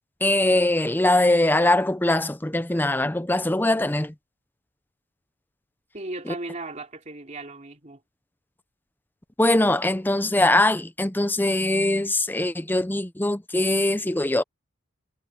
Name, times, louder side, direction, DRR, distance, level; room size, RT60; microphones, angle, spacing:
voice 1, 0.2-4.1 9.4-14.4, left 1 dB, 10° left, 0.6 m, -22 dB
voice 2, 5.9-8.0, right 2 dB, 35° right, 2.9 m, -36 dB
head